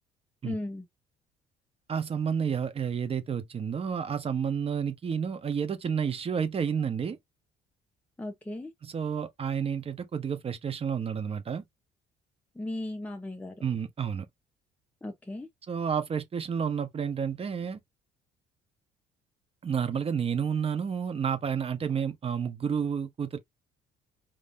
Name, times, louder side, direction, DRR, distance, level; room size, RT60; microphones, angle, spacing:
voice 1, 0.4-0.8 8.2-8.7 12.5-13.5 15.0-15.5, left 1 dB, 10° left, 0.9 m, -36 dB
voice 2, 1.9-7.2 8.8-11.6 13.6-14.3 15.7-17.8 19.6-23.4, right 7 dB, 35° right, 1.2 m, -30 dB
5.1 x 3.7 x 2.7 m
cardioid pair, 110°, 17 cm